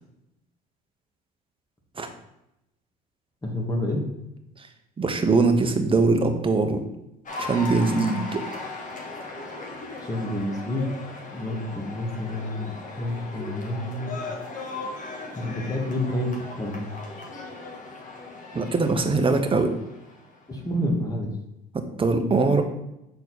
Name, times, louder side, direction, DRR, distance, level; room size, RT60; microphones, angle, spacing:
voice 1, 3.4-4.0 10.0-10.9 11.3-12.7 13.0-14.2 15.3-16.3 16.6-16.9 20.5-21.3, left 1 dB, 15° left, 0 dB, 2.0 m, -28 dB
voice 2, 5.0-6.8 7.4-8.4 18.5-19.7 22.0-22.6, right 3 dB, 25° right, 5 dB, 1.0 m, -22 dB
Cheering / Applause, 7.3-20.6, left 3 dB, 40° left, 1.6 m, -38 dB
6.7 x 4.2 x 4.2 m, 0.87 s
hypercardioid pair, 65°, 21 cm